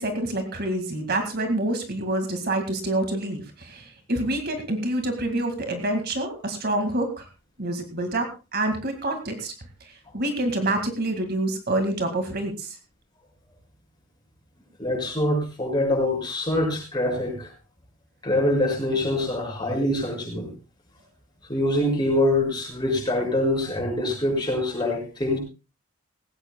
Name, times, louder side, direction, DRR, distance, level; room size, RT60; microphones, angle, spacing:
voice 1, 0.0-7.3 7.6-9.5 9.9-12.8, right 1 dB, 50° right, 6 dB, 2.1 m, -27 dB
voice 2, 14.8-17.5 18.2-20.5 21.5-25.4, left 1 dB, 20° left, 0 dB, 6.6 m, -24 dB
18.0 x 17.0 x 2.3 m, 0.30 s
head